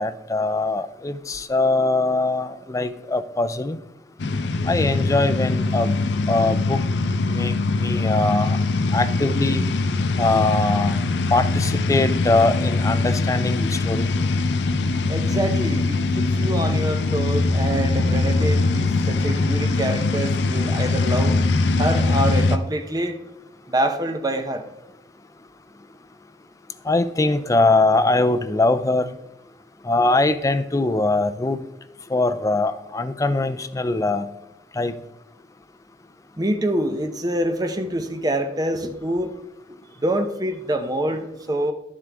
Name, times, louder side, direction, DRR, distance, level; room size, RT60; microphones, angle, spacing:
voice 1, 0.0-3.8 4.6-6.0 6.3-6.8 7.3-8.6 8.9-9.6 10.2-11.0 11.3-14.1 26.9-29.1 29.8-31.6 32.1-34.3 34.7-34.9, left 2 dB, 20° left, 11 dB, 0.4 m, -22 dB
sound 1, 4.2-22.6, left 3 dB, 80° left, 0.6 m, -22 dB
voice 2, 15.1-21.4 21.8-23.2 23.7-24.7 36.4-39.3 39.7-41.7, right 1 dB, 20° right, 6 dB, 0.8 m, -26 dB
11.0 x 7.4 x 3.5 m, 0.89 s
head